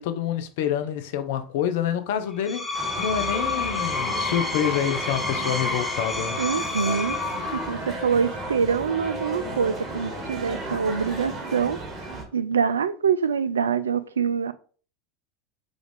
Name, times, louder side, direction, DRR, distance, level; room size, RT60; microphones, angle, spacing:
voice 1, 0.0-6.4, left 9 dB, 65° left, 0.5 m, -27 dB
Screech, 2.3-7.8, left 4 dB, 5° left, 1.2 m, -29 dB
sound 1, 2.7-12.2, right 1 dB, 40° right, 1.6 m, -34 dB
voice 2, 6.4-7.2 7.5-11.8 12.3-14.5, right 6 dB, 80° right, 0.3 m, -25 dB
5.0 x 2.5 x 3.3 m
figure-of-eight pair, 80°, 0 cm